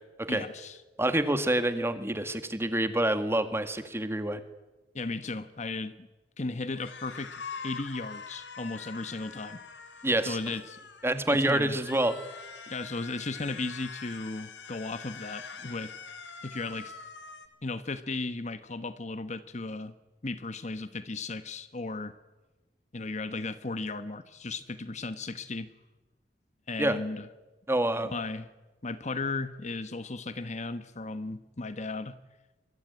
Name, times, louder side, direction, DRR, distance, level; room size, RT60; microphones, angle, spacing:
voice 1, 0.3-0.8 4.9-6.1 6.4-9.6 10.3-10.8 11.3-11.8 12.7-15.9 16.4-16.9 17.6-19.9 20.2-22.1 22.9-25.7 26.7-27.3 28.1-28.5 28.8-32.2, left 3 dB, 40° left, 1.1 m, -35 dB
voice 2, 1.0-4.4 10.0-10.4 11.0-12.2 26.8-27.0 27.7-28.1, right 1 dB, 15° right, 1.9 m, -27 dB
sound 1, 6.7-11.2 11.7-17.5, left 5 dB, 90° left, 3.3 m, -44 dB
26.0 x 23.0 x 9.5 m
head